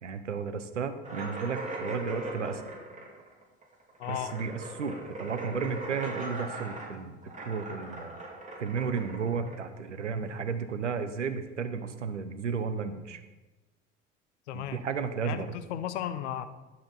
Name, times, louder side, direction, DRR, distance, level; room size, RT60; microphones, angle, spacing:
voice 1, 0.0-2.7 4.1-7.2 7.5-8.2 8.6-13.2 14.5-15.5, right 6 dB, 90° right, 10 dB, 0.7 m, -33 dB
sound 1, 1.0-10.4, right 2 dB, 20° right, 3.0 m, -40 dB
voice 2, 4.0-4.3 14.5-14.8 15.2-16.5, left 11 dB, 70° left, 11 dB, 0.8 m, -35 dB
11.0 x 7.6 x 4.0 m, 1.1 s
figure-of-eight pair, 65°, 35 cm